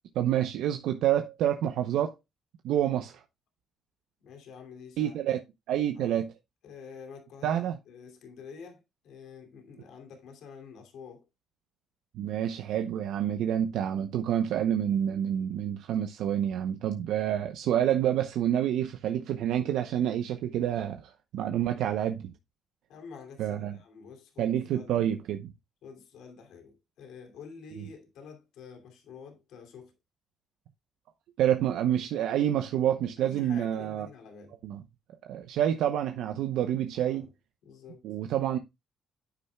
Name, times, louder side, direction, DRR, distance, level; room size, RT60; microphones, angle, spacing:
voice 1, 0.1-2.1 2.6-3.2 5.0-5.4 5.7-6.3 7.4-7.7 12.1-22.3 23.4-23.8 24.4-25.5 31.4-34.1 34.6-34.8 35.3-37.3 38.0-38.6, right 10 dB, 85° right, 0.8 m, -28 dB
voice 2, 4.2-5.2 6.0-6.2 6.6-11.2 22.9-25.0 25.8-29.9 33.2-34.6 36.9-37.3 37.6-38.1, left 5 dB, 85° left, 2.8 m, -48 dB
9.9 x 8.6 x 2.3 m
cardioid pair, 90°, 0 cm